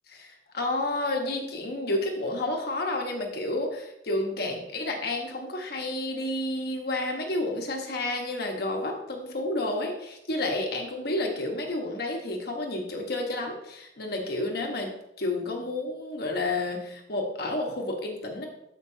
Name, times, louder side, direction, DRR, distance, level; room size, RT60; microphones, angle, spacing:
voice 1, 0.1-14.9 15.2-18.5, left 2 dB, 60° left, 2 dB, 1.2 m, -30 dB
13.0 x 5.1 x 2.8 m, 0.83 s
head